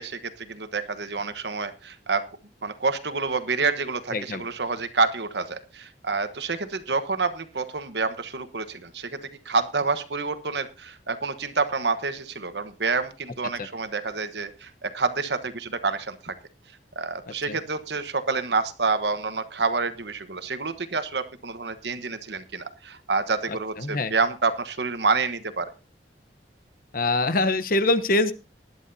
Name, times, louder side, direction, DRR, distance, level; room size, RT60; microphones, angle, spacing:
voice 1, 0.0-2.3 2.6-16.3 17.0-25.7, right 4 dB, 70° right, 11 dB, 1.2 m, -28 dB
voice 2, 4.1-4.4 17.5-17.6 23.5-24.1 26.9-28.3, left 2 dB, 55° left, 13 dB, 1.0 m, -24 dB
19.0 x 11.0 x 2.8 m, 0.30 s
head